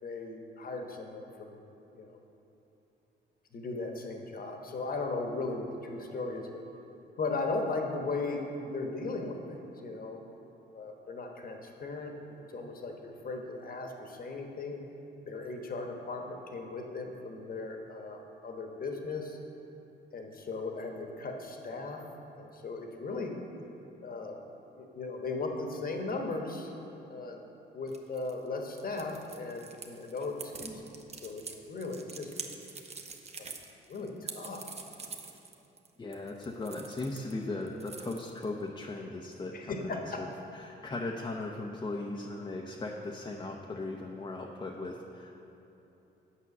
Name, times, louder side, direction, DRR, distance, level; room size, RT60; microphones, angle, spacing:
voice 1, 0.0-1.6 1.9-2.2 3.5-6.6 7.2-10.2 10.7-14.8 15.2-19.4 20.1-22.0 22.4-23.3 24.0-24.4 24.8-26.7 27.1-27.4 27.7-30.9 31.2-32.3 33.4-33.6 33.9-34.7 39.5-40.2, left 3 dB, 45° left, 3 dB, 1.1 m, -37 dB
sound 1, 27.9-37.3 37.6-38.6, right 4 dB, 35° right, 0.8 m, -45 dB
voice 2, 36.0-40.3 40.5-45.4, left 2 dB, 20° left, 0 dB, 0.6 m, -38 dB
8.5 x 5.9 x 6.0 m, 3.0 s
cardioid pair, 90°, 20 cm